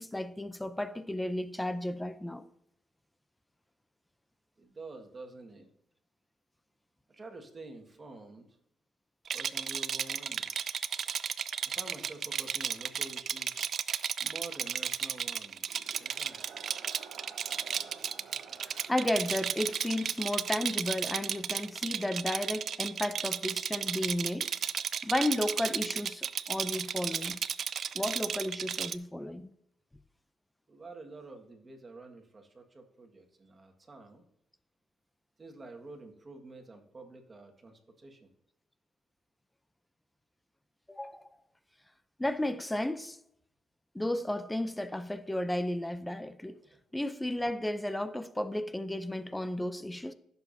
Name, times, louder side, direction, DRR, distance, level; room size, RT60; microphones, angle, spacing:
voice 1, 0.0-2.4 18.9-24.5 25.0-27.4 27.9-29.5 40.9-41.3 42.2-43.2 43.9-46.6 46.9-50.1, left 1 dB, 10° left, 0.6 m, -33 dB
voice 2, 4.6-5.7 7.1-8.6 9.3-10.5 11.7-13.6 14.2-16.5 30.7-34.2 35.4-38.3 46.6-46.8, right 2 dB, 30° right, 1.8 m, -48 dB
Rattle, 9.3-29.0, right 8 dB, 60° right, 0.4 m, -34 dB
sound 1, 15.4-23.1, right 6 dB, 75° right, 1.3 m, -54 dB
15.0 x 7.0 x 2.8 m
cardioid pair, 90°, 0 cm